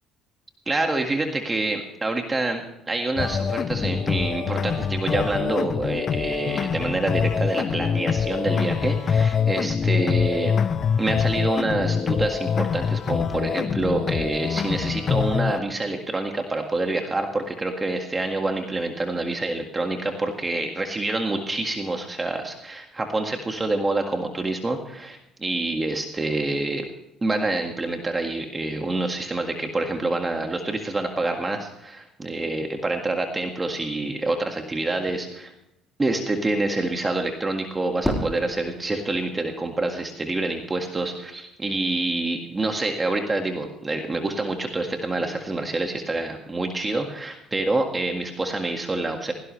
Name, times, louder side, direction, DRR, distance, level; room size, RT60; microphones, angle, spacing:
voice 1, 0.7-10.5 11.0-26.9 27.2-35.5 36.0-49.3, right 2 dB, 20° right, 3 dB, 1.8 m, -27 dB
sound 1, 3.2-15.6, left 6 dB, 45° left, 0.7 m, -24 dB
Fireworks, 38.0-40.2, equal, 5° left, 4.3 m, -32 dB
17.5 x 17.0 x 3.3 m, 0.87 s
cardioid pair, 105°, 0 cm